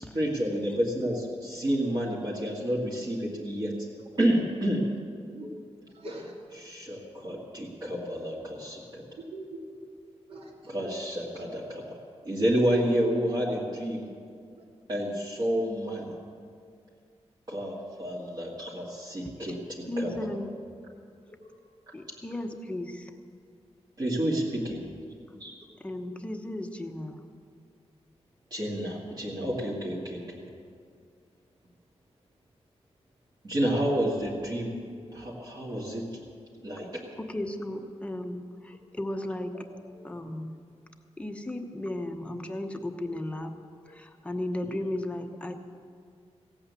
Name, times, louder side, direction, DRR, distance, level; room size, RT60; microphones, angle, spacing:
voice 1, 0.0-3.7 4.2-4.8 6.5-9.0 10.7-12.0 12.2-14.1 14.9-16.1 17.5-19.6 20.0-20.1 24.0-24.8 25.4-25.5 28.5-30.4 33.4-34.7 35.1-36.0 36.6-36.9, equal, 40° right, -6 dB, 2.1 m, -29 dB
voice 2, 5.9-6.3 9.2-9.8 10.3-10.7 21.4-21.5 35.0-35.3 39.5-40.0 43.0-43.2 43.8-43.9, right 1 dB, 55° right, -2 dB, 2.7 m, -44 dB
voice 3, 19.9-20.5 21.9-23.1 25.8-27.2 37.2-39.5 40.0-40.5 41.2-43.5 43.9-45.5, left 1 dB, 10° left, 4 dB, 0.9 m, -35 dB
16.5 x 8.6 x 8.2 m, 2.2 s
wide cardioid pair, 170°, 11 cm